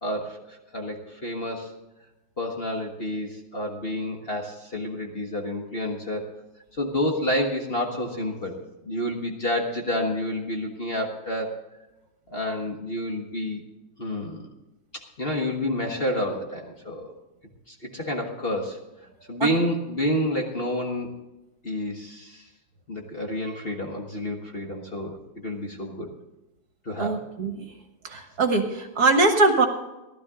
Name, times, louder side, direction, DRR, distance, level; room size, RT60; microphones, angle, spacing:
voice 1, 0.0-1.7 2.4-6.3 6.7-11.5 12.3-13.6 14.0-14.5 14.9-17.1 17.7-18.8 19.3-21.1 21.6-22.5 22.9-26.1 26.8-27.2, left 1 dB, 30° left, 1 dB, 1.6 m, -29 dB
voice 2, 27.0-27.6 28.0-29.7, right 3 dB, 55° right, 5 dB, 1.7 m, -22 dB
15.5 x 12.5 x 3.7 m, 1.0 s
omnidirectional pair, 2.1 m